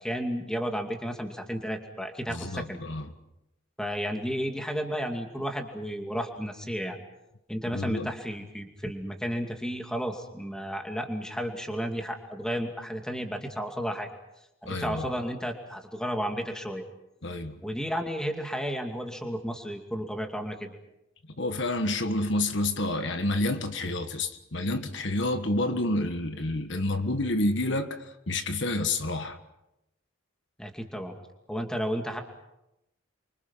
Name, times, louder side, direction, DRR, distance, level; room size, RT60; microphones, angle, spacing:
voice 1, 0.0-2.8 3.8-7.0 7.5-14.1 14.6-16.9 17.6-20.8 30.6-31.2 31.5-32.2, equal, 5° left, 3 dB, 2.4 m, -32 dB
voice 2, 2.3-3.1 7.7-8.1 14.7-15.1 17.2-17.6 21.4-29.4, left 2 dB, 55° left, 7 dB, 1.6 m, -29 dB
29.5 x 25.0 x 5.7 m, 0.89 s
head